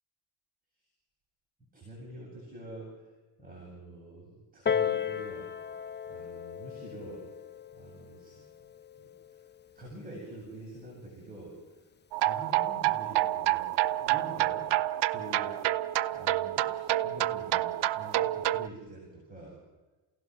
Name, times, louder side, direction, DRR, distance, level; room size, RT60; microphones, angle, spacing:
voice 1, 1.7-2.9 3.4-5.5 6.1-7.3 7.7-8.4 9.0-9.1 9.7-11.6 12.2-14.7 15.1-15.8 16.1-19.6, right 2 dB, 20° right, -3 dB, 7.9 m, -46 dB
Piano, 4.7-9.8 10.7-10.8, left 8 dB, 25° left, 0.8 m, -35 dB
sound 1, 12.1-18.7, right 15 dB, 85° right, 0.8 m, -28 dB
29.5 x 17.0 x 6.3 m, 1.2 s
cardioid pair, 95°, 40 cm